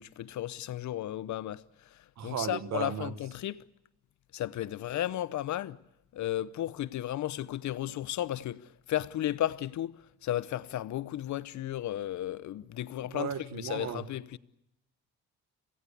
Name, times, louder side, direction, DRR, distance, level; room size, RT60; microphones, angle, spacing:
voice 1, 0.0-1.6 1.9-3.6 4.3-5.8 6.1-14.4, left 13 dB, 70° left, 0.8 m, -34 dB
voice 2, 2.2-3.1 13.0-14.1, right 9 dB, 65° right, 1.4 m, -35 dB
27.0 x 16.5 x 8.4 m
cardioid pair, 90°, 30 cm